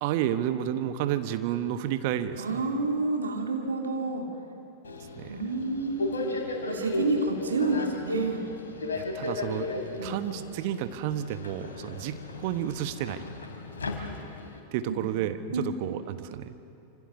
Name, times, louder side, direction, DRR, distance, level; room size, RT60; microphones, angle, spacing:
voice 1, 0.0-2.6 5.2-5.4 8.9-9.7 10.0-13.2 14.7-16.6, right 11 dB, 50° right, 10 dB, 1.3 m, -31 dB
voice 2, 2.4-4.3 5.3-6.3 6.7-8.5 10.0-10.2 14.9-15.3 15.5-15.7, right 3 dB, 70° right, 3 dB, 2.8 m, -29 dB
Subway metro underground, 4.8-14.6, left 2 dB, 70° left, 3.1 m, -35 dB
26.5 x 26.5 x 6.9 m, 2.9 s
figure-of-eight pair, 90°, 0 cm